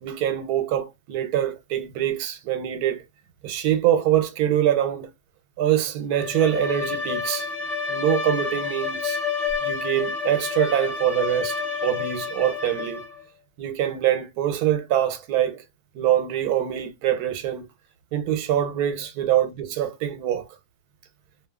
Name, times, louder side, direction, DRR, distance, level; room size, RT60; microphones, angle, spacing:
voice 1, 0.0-3.0 3.4-5.1 5.6-7.5 7.9-9.2 9.6-13.1 13.6-15.6 15.9-17.7 18.1-20.5, right 11 dB, 90° right, 1.1 m, -24 dB
Bowed string instrument, 6.1-13.2, left 5 dB, 30° left, 0.8 m, -29 dB
2.6 x 2.4 x 2.2 m
omnidirectional pair, 1.6 m